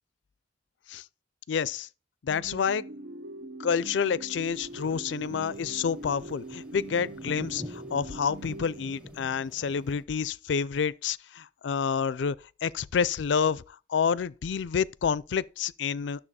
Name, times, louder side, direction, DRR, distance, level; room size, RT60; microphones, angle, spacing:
voice 1, 1.5-1.9 2.2-2.8 3.6-12.4 12.6-13.6 13.9-16.3, left 6 dB, 75° left, 0.4 m, -28 dB
sound 1, 2.3-9.5, right 1 dB, 70° right, 0.6 m, -42 dB
sound 2, 4.3-10.0, left 1 dB, 5° right, 0.9 m, -47 dB
12.5 x 6.7 x 4.2 m
head